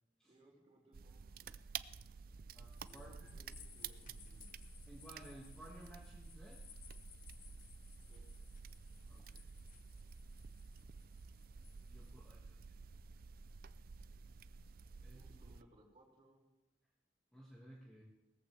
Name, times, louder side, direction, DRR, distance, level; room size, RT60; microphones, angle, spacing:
voice 1, 0.3-1.5 2.8-4.6 8.1-8.2 15.1-16.4, right 1 dB, 30° right, -5 dB, 5.3 m, -65 dB
sound 1, 0.9-15.6, right 6 dB, 55° right, 0.5 m, -52 dB
voice 2, 2.5-3.3 4.9-6.6 9.1-9.5 11.9-12.8 15.0-15.3 17.3-18.0, equal, 5° left, -4 dB, 1.9 m, -57 dB
sound 2, 2.6-12.3, left 10 dB, 45° left, 0.8 m, -63 dB
19.0 x 14.5 x 3.4 m, 1.0 s
head